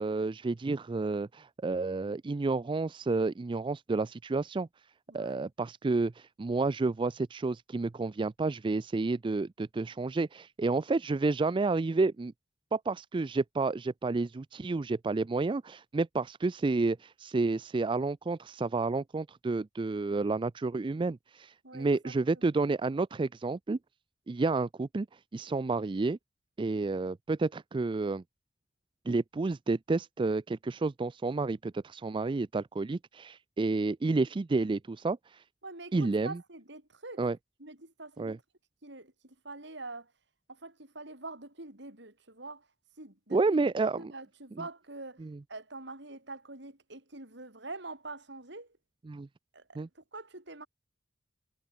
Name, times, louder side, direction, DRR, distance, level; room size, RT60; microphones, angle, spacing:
voice 1, 0.0-4.7 5.1-12.3 12.7-23.8 24.3-25.1 25.3-26.2 26.6-28.2 29.1-35.4 35.9-36.4 37.2-37.4 38.2-38.4 43.3-44.1 45.2-45.4 49.1-49.3 49.8-49.9, right 3 dB, 25° right, 0.4 m, -30 dB
voice 2, 5.1-5.5 21.6-22.1 22.6-22.7 35.6-37.3 37.6-38.4 38.8-40.1 40.5-42.7 43.0-43.4 44.0-48.8 49.5-50.7, right 2 dB, 65° right, 6.3 m, -45 dB
head